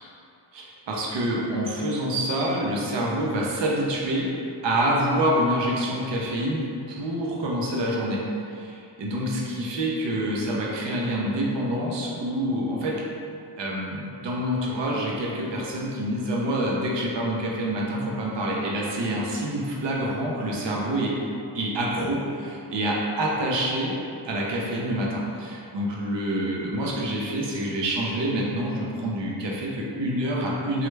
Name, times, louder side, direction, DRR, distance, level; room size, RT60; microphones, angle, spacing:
voice 1, 0.5-4.3 4.6-8.2 8.5-13.0 13.6-21.2 21.5-24.0 24.3-30.9, right 1 dB, 70° right, -3 dB, 0.7 m, -27 dB
3.2 x 2.3 x 3.2 m, 2.5 s
wide cardioid pair, 130°, 44 cm